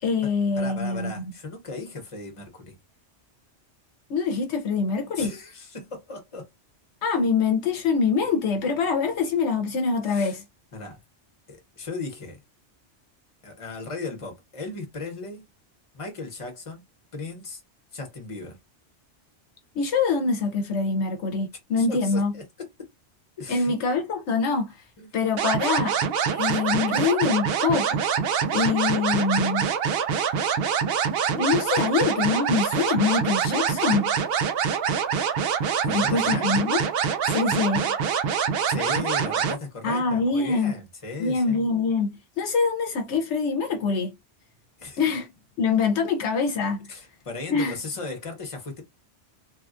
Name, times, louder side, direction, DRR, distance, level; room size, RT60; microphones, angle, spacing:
voice 1, 0.0-1.2 4.1-5.3 7.0-10.4 19.7-22.3 23.5-24.8 25.1-25.9 26.3-28.0 28.5-29.7 31.3-34.1 35.9-36.8 37.3-38.0 39.8-40.7 41.2-44.1 45.0-45.3 45.6-46.9 47.5-47.7, left 4 dB, 75° left, 0.9 m, -24 dB
voice 2, 0.5-2.8 5.1-6.5 10.0-10.4 10.7-11.0 11.5-12.4 13.4-15.5 15.9-16.8 17.1-17.6 17.9-18.6 21.8-22.4 23.4-23.7 25.0-25.1 25.8-25.9 26.7-26.8 35.8-36.6 38.7-41.7 44.8-45.0 46.9-48.8, left 3 dB, 30° left, 0.9 m, -36 dB
sound 1, 25.4-39.6, right 7 dB, 65° right, 0.7 m, -25 dB
3.2 x 2.3 x 2.4 m
omnidirectional pair, 1.2 m